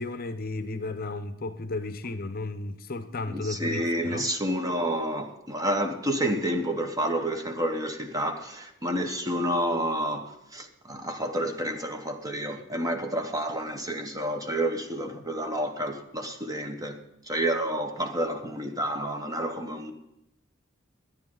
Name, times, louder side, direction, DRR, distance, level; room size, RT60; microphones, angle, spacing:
voice 1, 0.0-4.3, left 2 dB, 50° left, 0.7 m, -34 dB
voice 2, 3.3-17.0 17.3-19.9, right 1 dB, 20° right, 1.1 m, -29 dB
21.5 x 9.2 x 3.9 m
head